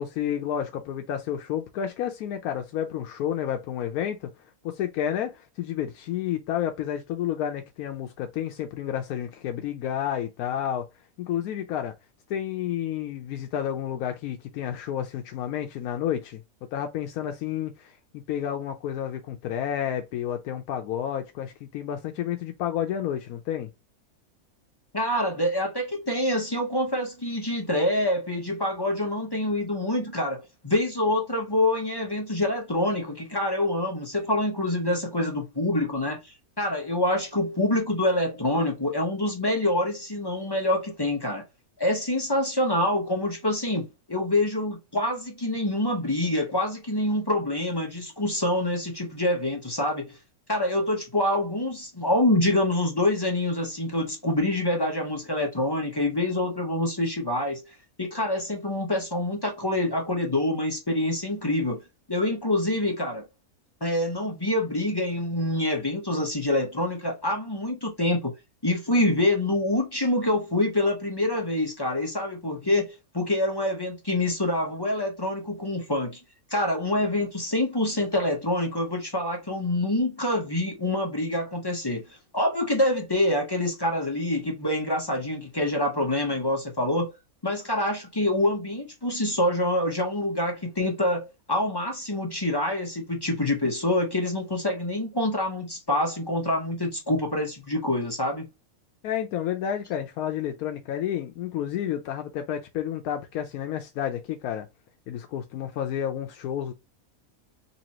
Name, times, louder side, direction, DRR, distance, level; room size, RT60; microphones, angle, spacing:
voice 1, 0.0-4.3 4.6-10.9 11.2-11.9 12.3-16.4 16.7-18.0 18.3-23.7 99.0-104.7 105.1-106.7, left 10 dB, 85° left, 1.1 m, -30 dB
voice 2, 24.9-41.4 41.8-50.2 50.5-57.6 58.0-61.8 62.1-63.2 63.8-68.3 68.6-76.2 76.5-87.1 87.4-98.5, left 1 dB, 20° left, 0.7 m, -26 dB
4.1 x 2.7 x 2.9 m
omnidirectional pair, 1.5 m